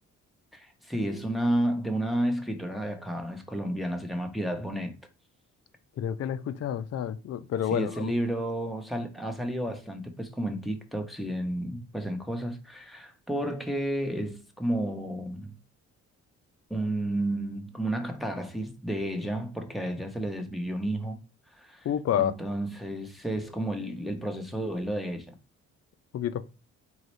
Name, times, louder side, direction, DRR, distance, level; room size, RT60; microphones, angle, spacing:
voice 1, 0.5-4.9 7.7-15.5 16.7-21.2 21.5-21.9 22.2-25.3, right 1 dB, ahead, 0.9 m, -31 dB
voice 2, 6.0-8.1 21.8-22.4 26.1-26.4, left 9 dB, 55° left, 0.5 m, -29 dB
3.9 x 3.1 x 3.2 m
cardioid pair, 90°, 30 cm